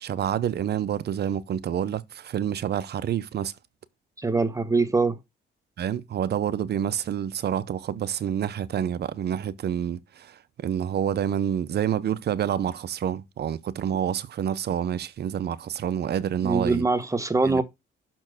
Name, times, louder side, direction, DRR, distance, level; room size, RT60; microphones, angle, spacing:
voice 1, 0.0-3.5 5.8-16.9 17.4-17.6, right 9 dB, 55° right, 0.7 m, -28 dB
voice 2, 4.2-5.2 16.4-17.6, right 3 dB, 15° right, 1.1 m, -23 dB
6.5 x 4.4 x 5.9 m
cardioid pair, 90°, 20 cm